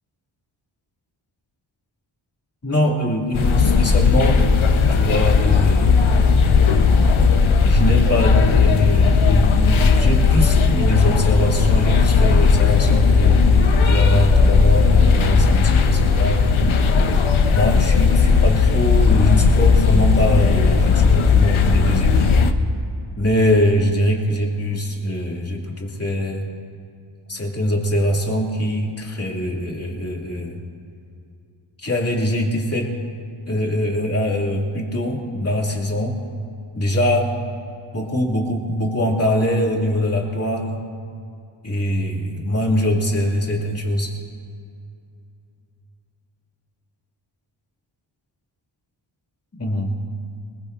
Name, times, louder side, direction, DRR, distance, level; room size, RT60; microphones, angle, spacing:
voice 1, 2.6-4.5 4.9-6.0 7.7-16.5 17.5-22.4 23.2-26.5 27.3-30.6 31.8-32.9 33.5-36.2 36.7-37.3 37.9-40.8 41.6-44.1 49.5-50.0, equal, 30° left, -1 dB, 2.7 m, -22 dB
sound 1, 3.3-22.5, left 5 dB, 75° left, 1.1 m, -16 dB
23.0 x 21.0 x 2.7 m, 2.5 s
wide cardioid pair, 100°, 49 cm